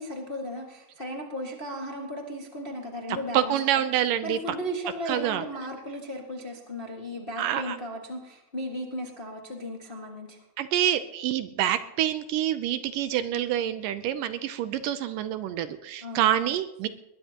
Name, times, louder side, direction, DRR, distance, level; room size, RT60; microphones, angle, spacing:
voice 1, 0.0-3.9 4.2-10.4 16.0-16.2, equal, 30° left, -1 dB, 0.9 m, -36 dB
voice 2, 3.3-4.4 5.1-5.4 7.4-7.8 10.6-16.9, right 11 dB, 75° right, 11 dB, 2.2 m, -27 dB
21.0 x 20.0 x 2.9 m, 0.95 s
omnidirectional pair, 4.1 m